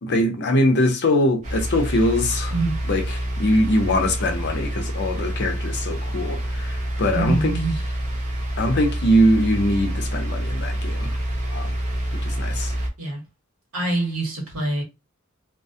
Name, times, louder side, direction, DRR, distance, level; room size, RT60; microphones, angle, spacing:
voice 1, 0.0-2.5 2.9-7.6 8.6-11.2 11.5-11.8 12.1-12.7, left 1 dB, 55° left, 0.6 m, -22 dB
sound 1, 1.4-12.9, right 1 dB, 35° right, 0.7 m, -27 dB
voice 2, 7.1-7.8 11.0-11.2 13.0-13.2 13.7-14.8, right 2 dB, 80° right, 1.3 m, -25 dB
2.4 x 2.1 x 2.7 m
head